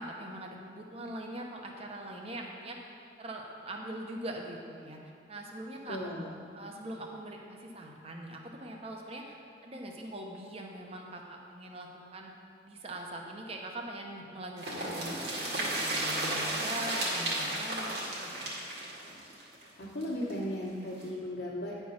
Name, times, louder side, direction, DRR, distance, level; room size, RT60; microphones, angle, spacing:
voice 1, 0.0-2.8 3.2-5.0 5.3-6.1 6.5-12.3 12.6-18.5, right 1 dB, 35° right, 1 dB, 0.9 m, -42 dB
voice 2, 5.9-6.4 19.8-21.8, left 1 dB, 60° left, -8 dB, 1.4 m, -36 dB
sound 1, 14.6-20.3 20.6-20.7 21.0-21.1, right 1 dB, 60° right, 2.0 m, -33 dB
9.8 x 4.6 x 5.9 m, 2.4 s
head